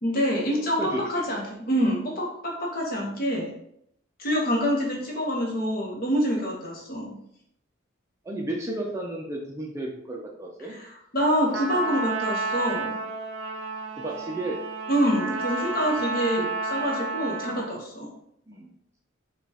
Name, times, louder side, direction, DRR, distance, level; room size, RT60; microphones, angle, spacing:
voice 1, 0.0-3.5 4.2-7.2 10.6-13.0 14.9-16.4 16.7-18.1, equal, 45° left, -1 dB, 0.9 m, -26 dB
voice 2, 0.5-1.3 3.0-3.1 8.2-10.8 14.0-14.6 16.4-16.5 17.5-17.7 18.5-18.7, right 1 dB, 15° right, -1 dB, 0.4 m, -33 dB
Trumpet, 11.5-17.8, right 3 dB, 65° right, 0.5 m, -31 dB
5.0 x 2.3 x 2.8 m, 0.74 s
head